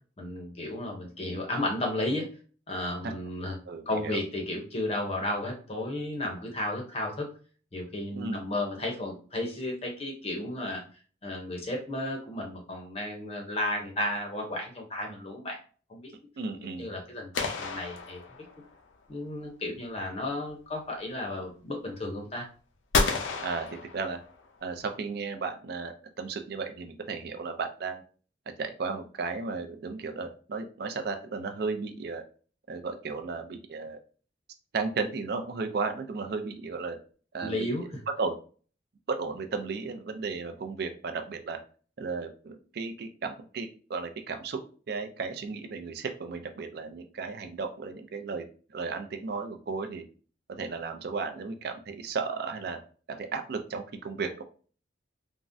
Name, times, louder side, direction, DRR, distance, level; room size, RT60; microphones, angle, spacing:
voice 1, 0.2-2.3 2.7-3.6 3.9-7.3 7.7-10.8 11.2-15.6 15.9-16.1 16.8-18.2 19.1-22.5 37.4-38.0, left 1 dB, 35° left, 1 dB, 0.6 m, -33 dB
voice 2, 3.7-4.2 8.1-8.4 16.4-16.9 23.4-23.7 23.9-24.2 24.6-28.0 28.6-32.2 32.7-34.0 34.7-37.0 37.3-37.7 38.2-38.3 39.1-41.6 42.0-44.6 44.9-48.4 48.7-50.0 50.6-52.8 53.2-54.4, right 4 dB, 55° right, 7 dB, 0.4 m, -34 dB
sound 1, 17.3-18.8 22.9-24.5, left 4 dB, 90° left, 0.5 m, -30 dB
3.5 x 2.0 x 2.5 m, 0.40 s
head